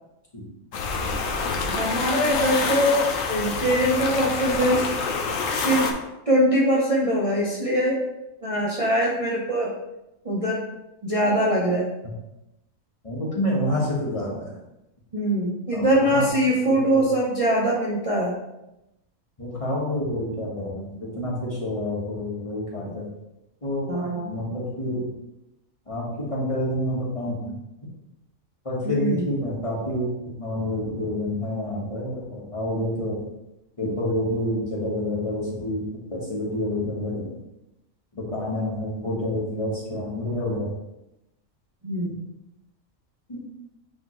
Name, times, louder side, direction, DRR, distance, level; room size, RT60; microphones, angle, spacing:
sound 1, 0.7-5.9, left 4 dB, 75° left, 1.1 m, -27 dB
voice 1, 1.7-4.9 5.5-5.9 6.3-8.0 8.4-9.7 10.2-10.6 11.0-11.9 15.1-18.4 23.9-24.4 28.8-29.3 41.8-42.1, equal, 30° right, -5 dB, 0.8 m, -22 dB
voice 2, 13.0-14.5 15.7-16.3 16.7-17.0 19.4-23.0 23.6-23.9 24.3-25.1 25.9-27.5 28.6-33.2 33.8-35.8 36.1-37.3 38.1-40.7 43.3-43.4, left 1 dB, 25° left, -5 dB, 1.5 m, -28 dB
8.6 x 3.5 x 3.1 m, 0.91 s
omnidirectional pair, 1.4 m